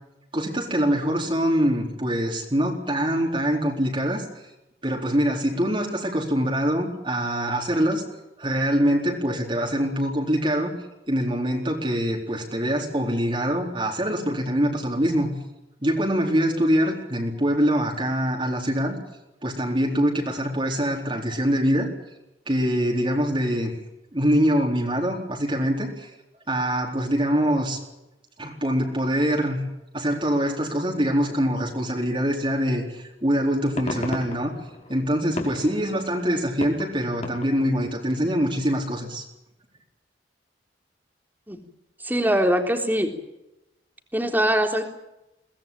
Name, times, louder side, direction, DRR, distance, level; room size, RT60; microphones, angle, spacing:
voice 1, 0.3-4.2 4.8-8.0 8.4-10.7 11.1-15.3 15.8-19.0 19.4-21.9 22.5-23.7 24.1-26.1 26.5-27.8 28.4-29.6 29.9-34.5 34.9-39.2, equal, 30° right, 0 dB, 4.2 m, -24 dB
sound 1, 32.7-32.8 33.3-37.9, left 1 dB, 40° left, 4.9 m, -36 dB
voice 2, 42.0-43.1 44.1-44.8, equal, 10° right, 4 dB, 3.6 m, -22 dB
23.5 x 19.5 x 9.0 m, 0.94 s
head